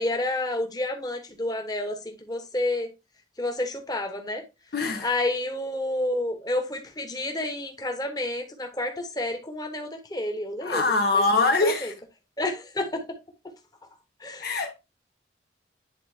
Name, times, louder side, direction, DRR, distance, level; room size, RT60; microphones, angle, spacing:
voice 1, 0.0-2.9 3.4-4.4 5.0-10.8 11.1-11.2 11.6-11.9 12.4-13.0 14.2-14.6, left 1 dB, 20° left, 1.1 m, -29 dB
voice 2, 4.7-5.1 10.6-11.9 14.4-14.7, left 3 dB, 55° left, 0.8 m, -23 dB
9.8 x 3.9 x 2.7 m
head